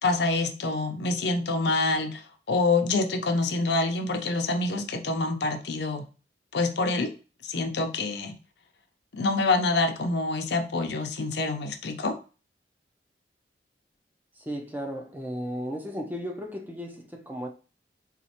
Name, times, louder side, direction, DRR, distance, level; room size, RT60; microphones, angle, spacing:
voice 1, 0.0-6.1 6.5-7.2 7.4-8.3 9.1-12.2, left 3 dB, 70° left, 0.6 m, -26 dB
voice 2, 14.4-17.5, equal, 10° right, 0.5 m, -35 dB
4.1 x 2.4 x 2.8 m
head